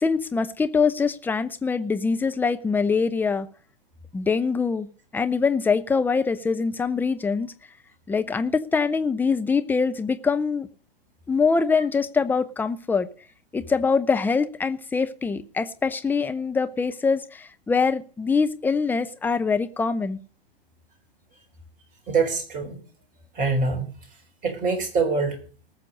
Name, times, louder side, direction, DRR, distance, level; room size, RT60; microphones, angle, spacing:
voice 1, 0.0-3.5 4.1-4.9 5.1-7.5 8.1-10.7 11.3-13.1 13.5-20.2, left 5 dB, 5° left, 9 dB, 0.7 m, -24 dB
voice 2, 22.1-22.8 23.4-23.9 24.4-25.4, right 4 dB, 25° right, 5 dB, 4.2 m, -24 dB
19.5 x 6.8 x 5.2 m, 0.41 s
figure-of-eight pair, 110°, 30 cm